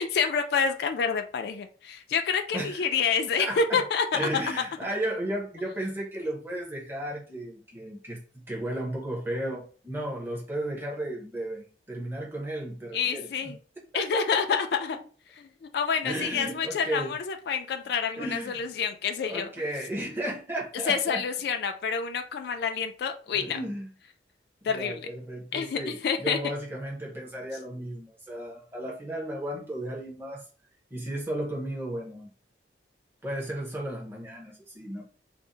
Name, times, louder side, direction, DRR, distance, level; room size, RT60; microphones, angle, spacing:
voice 1, 0.0-4.4 12.9-13.6 13.9-15.0 15.6-19.5 20.9-23.6 24.6-25.1 25.5-26.4, left 6 dB, 60° left, 6 dB, 0.3 m, -28 dB
voice 2, 3.4-3.8 4.1-13.5 13.9-14.4 16.0-17.1 18.2-18.6 19.2-21.2 23.3-23.9 24.6-30.4 30.9-32.3 33.2-35.0, right 1 dB, 10° right, -2 dB, 0.7 m, -34 dB
2.6 x 2.0 x 3.8 m, 0.39 s
head